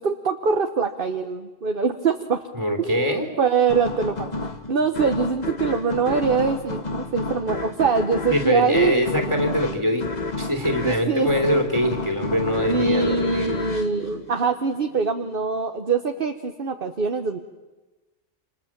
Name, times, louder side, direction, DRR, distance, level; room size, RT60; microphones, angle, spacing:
voice 1, 0.0-2.4 2.8-9.7 10.8-11.3 12.7-17.4, right 5 dB, 50° right, 5 dB, 1.3 m, -24 dB
voice 2, 2.5-3.3 8.3-13.6, equal, 20° right, 2 dB, 3.0 m, -23 dB
sound 1, 3.7-15.0, left 3 dB, 35° left, 1.6 m, -31 dB
29.0 x 27.0 x 7.4 m, 1.1 s
omnidirectional pair, 1.2 m